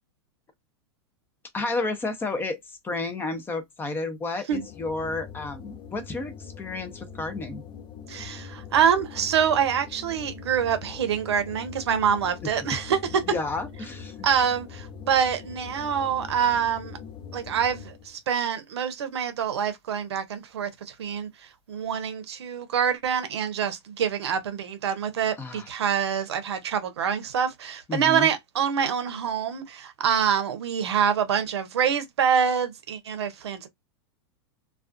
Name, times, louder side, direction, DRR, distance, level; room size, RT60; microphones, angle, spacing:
voice 1, 1.5-2.6 2.8-7.6 12.4-12.5 13.2-14.3 25.4-25.7 27.9-28.3, left 3 dB, 15° left, 0.6 m, -31 dB
sound 1, 4.5-18.2, left 6 dB, 40° left, 0.9 m, -42 dB
voice 2, 8.1-13.0 14.2-17.0 17.3-21.3 21.7-33.7, right 8 dB, 85° right, 0.6 m, -26 dB
2.3 x 2.3 x 2.5 m
hypercardioid pair, 125°, 14 cm